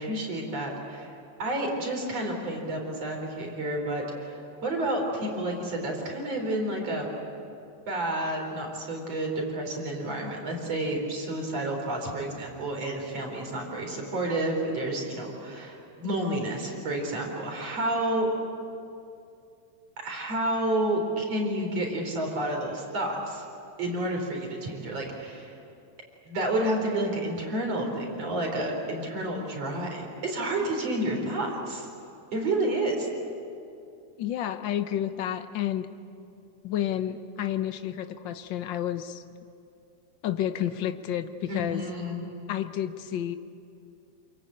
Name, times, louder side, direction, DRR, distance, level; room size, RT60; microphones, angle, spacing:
voice 1, 0.0-7.1 7.9-18.3 20.0-23.4 23.8-25.6 26.3-31.9 32.3-33.1 41.5-42.2, right 1 dB, 60° right, 1 dB, 5.1 m, -30 dB
voice 2, 34.2-35.9 36.6-39.2 40.2-41.8 42.5-43.4, left 11 dB, 85° left, 9 dB, 1.0 m, -30 dB
28.0 x 23.5 x 8.8 m, 2.6 s
omnidirectional pair, 3.3 m